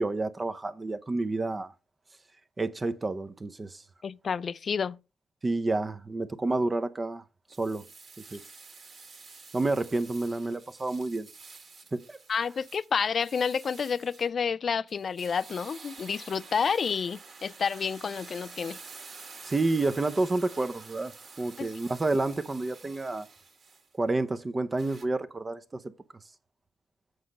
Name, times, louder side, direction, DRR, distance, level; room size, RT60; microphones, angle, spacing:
voice 1, 0.0-1.7 2.6-3.8 5.4-7.2 7.6-7.9 8.3-8.4 9.5-11.3 11.9-12.2 19.4-21.1 21.4-23.3 24.0-25.8, right 2 dB, 25° right, 0.7 m, -29 dB
voice 2, 4.0-5.0 12.3-18.8 21.6-21.7, left 6 dB, 45° left, 0.4 m, -29 dB
sound 1, 7.5-14.3 14.9-23.9 24.8-25.0, right 4 dB, 45° right, 1.8 m, -49 dB
7.9 x 5.0 x 5.3 m
cardioid pair, 90°, 0 cm